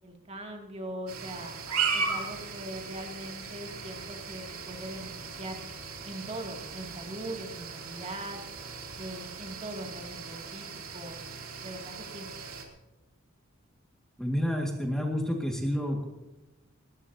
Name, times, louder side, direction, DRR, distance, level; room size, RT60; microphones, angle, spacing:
voice 1, 0.0-1.5 1.9-5.1 5.4-5.6 6.0-8.5 9.0-10.7 10.9-11.2 11.6-12.3, right 1 dB, 30° right, 2 dB, 2.5 m, -41 dB
sound 1, 1.1-12.7, right 5 dB, 80° right, 3.0 m, -37 dB
voice 2, 14.2-16.1, equal, 5° left, 1 dB, 1.9 m, -29 dB
19.5 x 19.0 x 2.8 m, 1.1 s
head